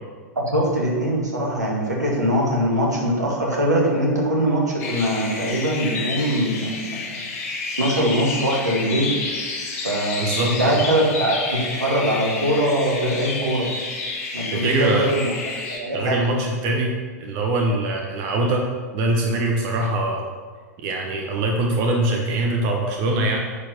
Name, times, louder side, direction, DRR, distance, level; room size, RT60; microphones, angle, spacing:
voice 1, 0.4-7.2 7.8-9.2 9.8-13.7 14.3-15.3 15.6-16.2, equal, 80° right, -2 dB, 2.2 m, -22 dB
sound 1, 4.8-15.8, left 3 dB, 50° left, 2.0 m, -30 dB
voice 2, 10.2-10.7 14.5-15.1 15.9-16.9 17.2-18.7 18.9-20.3 20.8-23.4, right 2 dB, 40° right, 1 dB, 1.2 m, -23 dB
9.8 x 4.6 x 6.9 m, 1.5 s
figure-of-eight pair, 95°, 9 cm